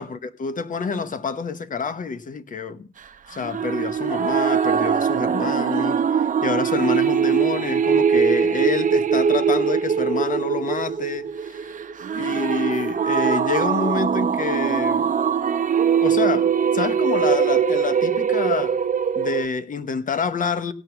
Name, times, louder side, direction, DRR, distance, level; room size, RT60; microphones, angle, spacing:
voice 1, 0.0-2.9 3.3-11.6 12.2-15.1 16.0-18.8 19.1-20.7, left 5 dB, 40° left, 1.1 m, -27 dB
sound 1, 3.4-19.4, right 7 dB, 40° right, 0.8 m, -21 dB
17.0 x 6.1 x 5.7 m
cardioid pair, 90°, 20 cm